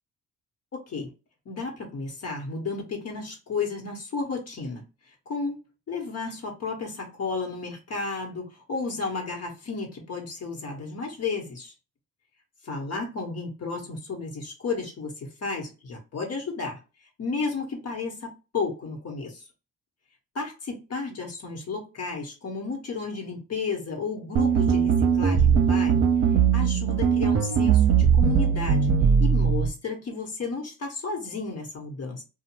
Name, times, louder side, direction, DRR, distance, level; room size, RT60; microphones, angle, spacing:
voice 1, 0.7-1.1 1.4-4.8 5.3-5.6 5.9-11.7 12.6-16.8 17.2-19.4 20.3-26.0 26.5-28.9 29.2-32.2, left 4 dB, 55° left, 1.2 m, -33 dB
sound 1, 24.4-29.7, right 6 dB, 45° right, 0.7 m, -20 dB
2.6 x 2.3 x 3.0 m
cardioid pair, 90°, 30 cm